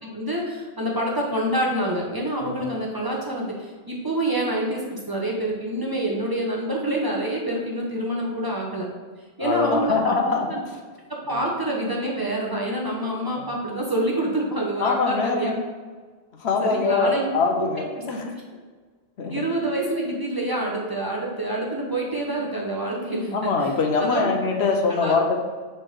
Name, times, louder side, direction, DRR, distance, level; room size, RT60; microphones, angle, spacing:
voice 1, 0.0-8.9 9.4-10.6 11.3-15.5 16.6-17.7 18.1-18.2 19.3-24.3 24.9-25.1, right 1 dB, 20° right, -3 dB, 1.0 m, -27 dB
voice 2, 9.4-10.5 11.3-11.4 13.4-13.5 14.8-15.5 16.4-18.3 19.2-19.4 23.3-25.3, left 4 dB, 90° left, 1 dB, 1.1 m, -23 dB
7.1 x 4.2 x 3.6 m, 1.5 s
omnidirectional pair, 1.1 m